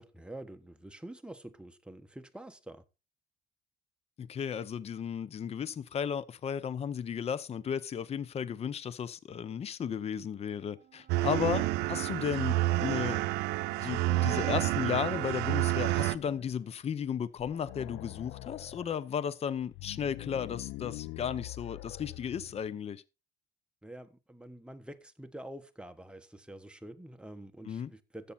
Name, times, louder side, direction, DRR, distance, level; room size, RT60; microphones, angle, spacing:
voice 1, 0.0-2.8 11.5-11.7 23.8-28.3, right 1 dB, 5° right, 1.3 m, -47 dB
voice 2, 4.2-13.2 13.8-23.0 27.6-27.9, left 8 dB, 40° left, 0.7 m, -34 dB
sound 1, 10.8-15.8, right 11 dB, 55° right, 1.2 m, -49 dB
sound 2, 11.1-16.2, right 17 dB, 85° right, 0.6 m, -29 dB
sound 3, 15.2-16.7 17.0-17.1 17.4-18.9 19.6-22.7, left 18 dB, 85° left, 0.5 m, -45 dB
13.0 x 8.6 x 4.3 m
cardioid pair, 110°, 17 cm